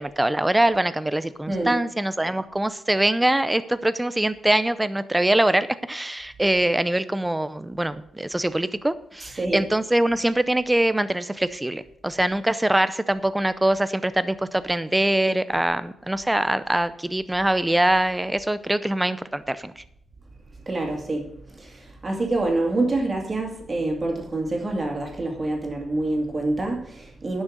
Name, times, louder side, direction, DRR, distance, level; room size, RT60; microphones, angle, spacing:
voice 1, 0.0-19.7, right 1 dB, 10° right, 14 dB, 0.6 m, -23 dB
voice 2, 1.5-1.8 9.2-9.7 20.7-27.4, right 2 dB, 25° right, 1 dB, 2.5 m, -27 dB
11.0 x 6.3 x 6.5 m, 0.73 s
wide cardioid pair, 145°, 0 cm